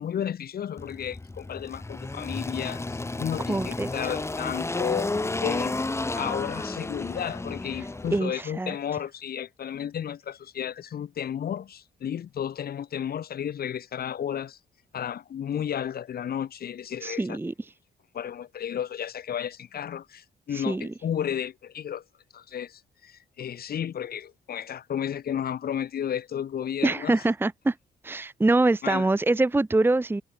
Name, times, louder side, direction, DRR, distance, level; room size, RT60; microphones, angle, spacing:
voice 1, 0.0-5.1 5.4-5.8 6.2-14.6 14.9-17.4 18.1-22.0 22.3-27.3 28.8-29.1, left 9 dB, 65° left, 3.5 m, -33 dB
Engine, 0.8-8.2, left 2 dB, 15° left, 2.6 m, -32 dB
voice 2, 3.5-3.9 8.1-8.7 17.0-17.5 20.5-20.9 26.8-27.7 28.0-30.2, right 2 dB, 10° right, 1.0 m, -24 dB
cardioid pair, 135°, 17 cm